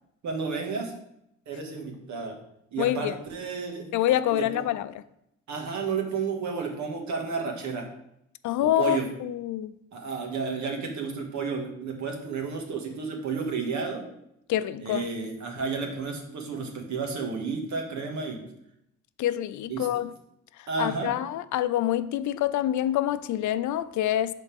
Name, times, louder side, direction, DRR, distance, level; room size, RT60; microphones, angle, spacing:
voice 1, 0.2-0.9 1.4-2.4 2.7-3.9 4.3-4.6 5.5-7.9 8.6-9.0 9.9-14.0 14.8-18.4 19.7-19.9 20.7-21.1, right 5 dB, 70° right, 1.9 m, -32 dB
voice 2, 2.8-3.2 3.9-5.0 8.4-9.7 14.5-15.0 19.2-20.1 20.8-24.3, left 12 dB, 75° left, 0.5 m, -26 dB
12.0 x 4.2 x 3.5 m
cardioid pair, 90°, 30 cm